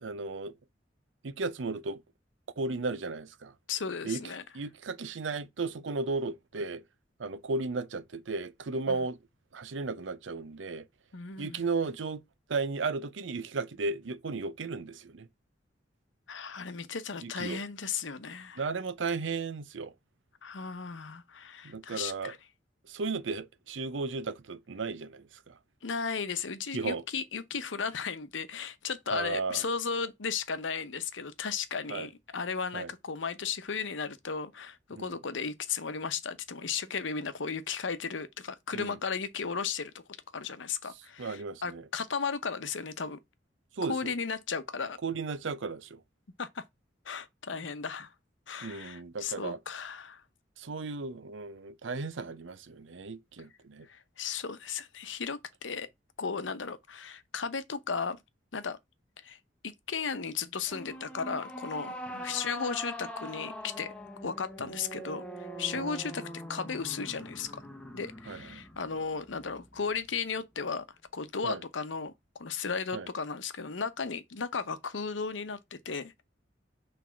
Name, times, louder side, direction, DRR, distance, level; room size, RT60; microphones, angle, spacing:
voice 1, 0.0-0.5 1.2-2.0 2.6-3.5 4.0-4.2 4.5-6.8 7.2-9.2 9.5-10.9 11.4-12.2 12.5-15.3 17.2-17.6 18.6-19.9 21.6-22.3 22.9-25.6 26.7-27.0 29.1-29.6 31.9-32.1 32.7-32.9 34.9-35.2 38.7-39.0 41.2-41.8 43.8-44.1 45.0-46.0 48.6-49.6 50.6-53.9 64.6-64.7 65.8-65.9 68.3-68.6 71.4-71.6 72.9-73.1, right 4 dB, 90° right, 0.6 m, -35 dB
voice 2, 3.7-4.4 8.9-9.0 11.1-11.6 16.3-18.6 20.4-22.4 25.8-39.9 40.3-43.2 43.9-45.0 46.4-46.6 47.0-48.1 48.5-50.2 53.9-55.9 56.2-58.2 58.5-58.8 59.2-59.4 59.6-63.9 64.2-67.6 67.9-70.8 71.1-76.2, left 5 dB, 90° left, 0.8 m, -35 dB
sound 1, 60.7-70.1, equal, 5° left, 1.1 m, -43 dB
6.2 x 3.4 x 5.6 m
head